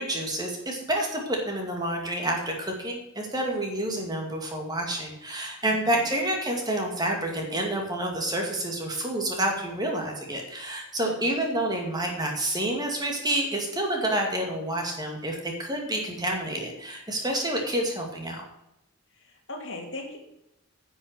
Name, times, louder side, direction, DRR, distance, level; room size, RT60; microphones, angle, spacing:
voice 1, 0.0-18.4, right 1 dB, 20° right, 1 dB, 2.1 m, -29 dB
voice 2, 5.6-6.1 11.1-11.3 19.1-20.2, left 2 dB, 60° left, 0 dB, 3.0 m, -40 dB
10.5 x 6.2 x 7.4 m, 0.89 s
head